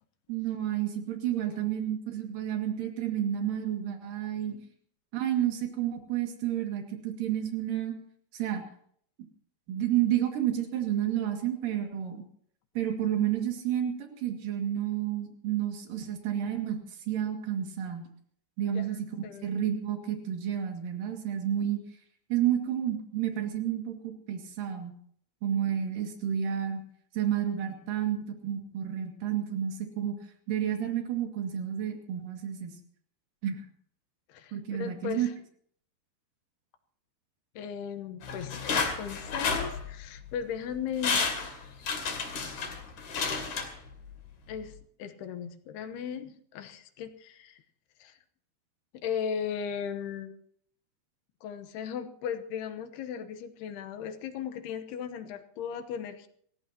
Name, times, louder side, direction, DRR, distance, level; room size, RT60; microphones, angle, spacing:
voice 1, 0.3-4.6 5.1-8.0 8.3-8.6 9.7-12.3 12.8-18.1 18.6-19.1 19.4-21.8 22.3-24.9 25.4-26.8 27.1-30.1 30.5-32.7 33.4-33.7 34.5-35.3, right 10 dB, 60° right, 3 dB, 3.6 m, -30 dB
voice 2, 18.6-19.5 34.3-35.3 37.6-41.2 44.5-47.6 48.0-48.2 48.9-50.3 51.4-56.3, left 8 dB, 80° left, 8 dB, 3.0 m, -37 dB
sound 1, 38.2-40.2 40.7-40.8 41.0-44.2 44.5-44.6, left 5 dB, 50° left, 3.5 m, -31 dB
29.0 x 15.0 x 2.9 m, 0.62 s
omnidirectional pair, 4.7 m